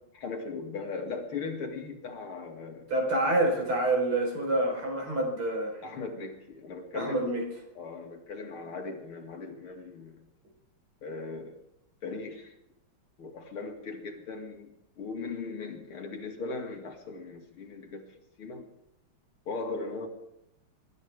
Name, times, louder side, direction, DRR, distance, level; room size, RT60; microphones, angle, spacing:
voice 1, 0.1-2.9 5.8-7.3 7.8-10.2 11.0-11.5 12.0-12.5 13.2-14.7 15.0-18.0 18.4-18.7 19.5-20.1, left 4 dB, 75° left, 2 dB, 3.0 m, -38 dB
voice 2, 2.9-5.8 6.9-7.4, right 1 dB, 75° right, 1 dB, 5.3 m, -27 dB
26.0 x 13.0 x 3.6 m, 0.79 s
omnidirectional pair, 2.4 m